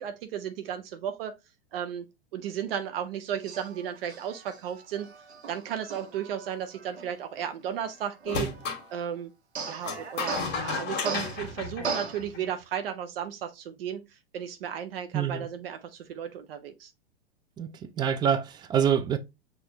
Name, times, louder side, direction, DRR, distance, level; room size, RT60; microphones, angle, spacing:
voice 1, 0.0-1.4 1.7-2.1 2.3-5.1 5.5-8.5 8.9-9.3 9.7-16.9, right 9 dB, 60° right, 0.7 m, -34 dB
Male speech man speaking, 3.4-9.0 9.6-12.5, right 5 dB, 90° right, 1.2 m, -39 dB
sound 1, 8.3-8.8 9.8-12.5, left 4 dB, 35° left, 1.5 m, -33 dB
voice 2, 15.1-15.5 17.6-17.7 18.0-19.2, right 8 dB, 15° right, 0.3 m, -25 dB
5.9 x 2.6 x 2.8 m
hypercardioid pair, 105°, 32 cm